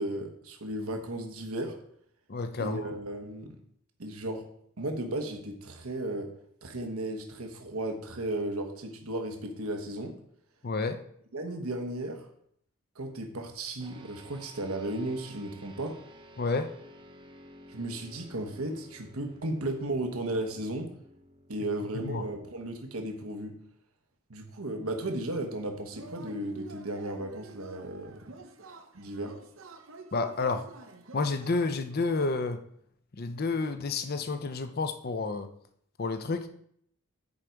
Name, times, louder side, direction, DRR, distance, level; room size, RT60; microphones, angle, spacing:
voice 1, 0.0-1.8 2.6-3.6 4.0-4.5 4.8-6.3 6.6-10.2 11.3-12.3 12.9-16.0 17.7-20.9 21.5-23.6 24.3-28.2 28.9-29.4, right 1 dB, 85° right, 4 dB, 1.2 m, -35 dB
voice 2, 2.3-2.9 10.6-11.0 16.4-16.7 22.0-22.2 30.1-30.6 31.1-32.6 33.1-35.5 36.0-36.5, left 3 dB, 45° left, 8 dB, 0.6 m, -30 dB
sound 1, 13.8-23.5, equal, 25° right, 0.7 m, -54 dB
Yell / Cheering, 25.9-32.0, right 3 dB, 65° right, 0.8 m, -49 dB
9.8 x 5.1 x 4.5 m, 0.68 s
head